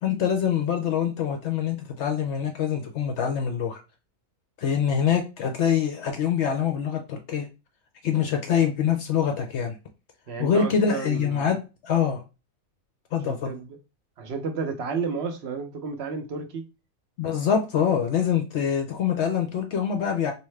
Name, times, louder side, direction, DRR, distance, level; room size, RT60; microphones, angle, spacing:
voice 1, 0.0-3.8 4.6-7.5 8.0-9.8 10.4-12.2 13.1-13.5 17.2-20.3, left 7 dB, 65° left, 0.8 m, -25 dB
voice 2, 10.3-11.5 13.2-13.8 14.2-16.7, right 5 dB, 55° right, 0.9 m, -32 dB
3.5 x 2.7 x 3.2 m
omnidirectional pair, 1.4 m